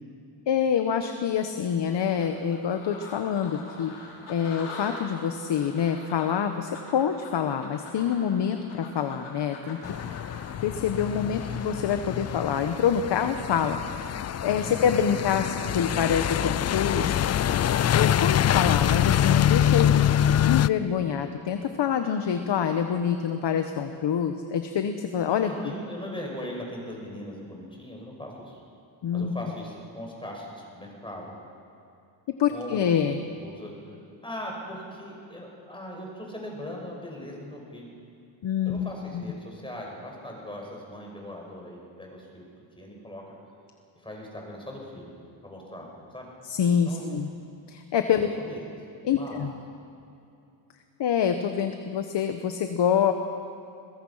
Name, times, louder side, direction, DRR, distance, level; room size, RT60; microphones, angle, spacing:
voice 1, 0.5-3.9 4.3-9.8 10.6-17.2 17.5-20.1 20.4-25.5 29.0-29.3 32.4-33.2 38.4-39.2 46.4-47.3 47.7-48.3 49.0-49.5 51.0-53.1, left 8 dB, 60° left, 7 dB, 1.3 m, -26 dB
sound 1, 1.9-14.8 15.1-20.3, left 3 dB, 90° left, 5.1 m, -46 dB
sound 2, 9.8-20.7, left 10 dB, 35° left, 0.4 m, -25 dB
voice 2, 25.4-28.6 29.1-31.3 32.5-33.1 33.4-33.8 34.2-37.9 38.6-42.4 42.8-43.2 44.0-45.1 45.4-46.3 46.9-47.0 48.1-48.6 49.1-49.5, left 1 dB, 10° left, -1 dB, 5.7 m, -39 dB
22.0 x 21.0 x 5.8 m, 2.7 s
cardioid pair, 110°, 48 cm